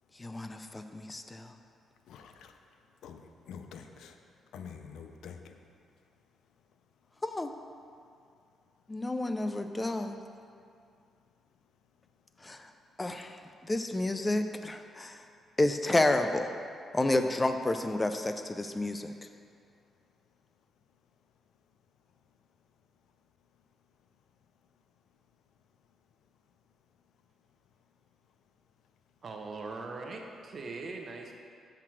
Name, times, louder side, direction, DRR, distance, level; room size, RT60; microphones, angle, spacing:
voice 1, 0.2-1.5 7.2-7.5 8.9-10.2 12.4-12.7 13.0-13.4 13.6-15.2 15.6-16.5 16.9-19.1, left 2 dB, 15° left, 7 dB, 0.3 m, -30 dB
voice 2, 2.0-2.8 3.0-4.2 4.5-5.7, left 6 dB, 85° left, 6 dB, 0.4 m, -47 dB
voice 3, 29.2-31.3, right 3 dB, 40° right, 2 dB, 0.7 m, -41 dB
5.8 x 4.4 x 6.1 m, 2.3 s
cardioid pair, 125°, 0 cm